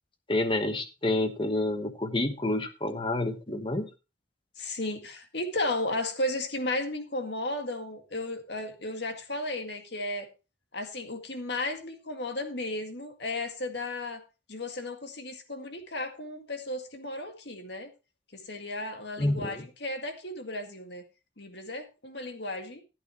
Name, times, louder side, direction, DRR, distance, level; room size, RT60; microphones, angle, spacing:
voice 1, 0.3-3.9 19.2-19.6, left 1 dB, 25° left, 8 dB, 1.2 m, -28 dB
voice 2, 4.6-10.3 10.7-14.2 14.5-17.9 18.3-21.0 21.4-22.8, left 2 dB, 60° left, 5 dB, 2.0 m, -34 dB
14.5 x 8.7 x 3.0 m, 0.29 s
head